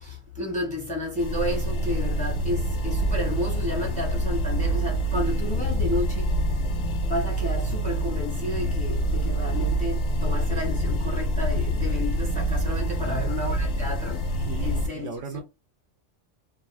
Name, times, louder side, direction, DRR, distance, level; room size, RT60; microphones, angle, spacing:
voice 1, 0.0-6.3 7.0-14.2 14.6-15.4, left 1 dB, 5° left, 0.7 m, -31 dB
sound 1, 1.2-14.9, right 1 dB, 60° left, 0.8 m, -26 dB
voice 2, 13.0-13.8 14.5-15.4, right 5 dB, 65° right, 0.8 m, -38 dB
2.5 x 2.0 x 3.1 m
omnidirectional pair, 1.3 m